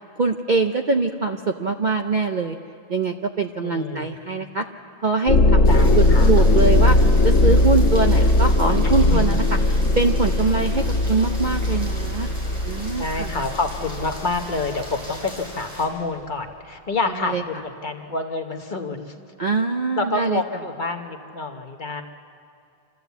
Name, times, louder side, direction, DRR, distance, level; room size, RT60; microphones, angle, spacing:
voice 1, 0.2-2.6 2.9-4.6 5.0-5.6 5.9-7.0 7.2-9.4 10.0-12.3 12.6-13.3 17.2-17.4 19.4-20.4, right 4 dB, 45° right, 5 dB, 0.6 m, -23 dB
voice 2, 3.6-4.4 5.6-6.5 8.8-9.2 13.0-19.1 20.0-22.0, left 3 dB, 40° left, 5 dB, 1.0 m, -28 dB
sound 1, 5.3-14.7, left 1 dB, 80° left, 1.9 m, -18 dB
Rain, 5.6-15.8, equal, 20° right, 5.9 m, -39 dB
26.5 x 13.5 x 8.1 m, 2.5 s
omnidirectional pair, 1.4 m